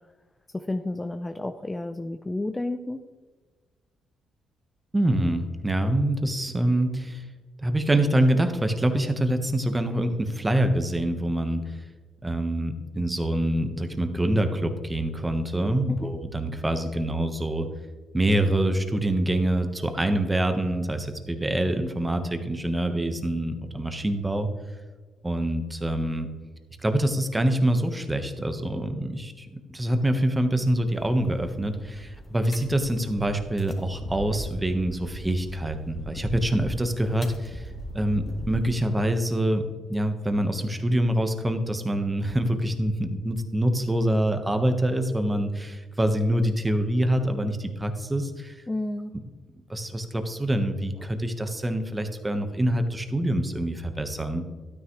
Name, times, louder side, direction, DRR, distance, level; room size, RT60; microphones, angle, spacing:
voice 1, 0.5-3.0 15.9-16.1 48.7-49.1 51.0-51.1, left 2 dB, 15° left, 8 dB, 0.5 m, -31 dB
voice 2, 4.9-7.3 7.6-11.8 12.2-17.7 18.1-24.5 25.2-26.3 26.8-39.6 39.9-48.5 49.7-54.4, right 1 dB, 15° right, 7 dB, 1.2 m, -25 dB
sound 1, 30.9-38.8, equal, 40° left, 2.4 m, -39 dB
12.5 x 9.5 x 3.2 m, 1.3 s
cardioid pair, 90°, 0 cm